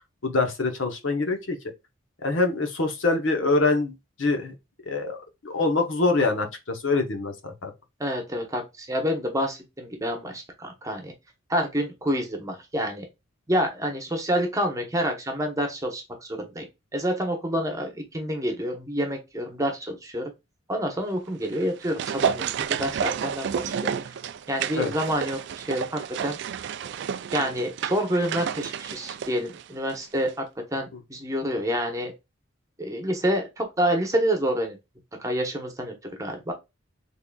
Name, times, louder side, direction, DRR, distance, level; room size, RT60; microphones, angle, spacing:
voice 1, 0.2-1.6 2.2-4.5 4.9-5.2 5.4-7.7 24.8-24.9, left 3 dB, 65° left, 0.8 m, -24 dB
voice 2, 8.0-11.1 11.5-13.1 13.5-16.6 16.9-20.3 20.7-24.1 24.5-26.4 27.3-30.5 30.7-32.1 32.8-34.8 35.2-35.9 36.2-36.5, equal, 15° right, 1.0 m, -28 dB
sound 1, 21.4-30.0 30.3-30.4, right 7 dB, 60° right, 0.3 m, -31 dB
3.7 x 3.5 x 2.3 m
head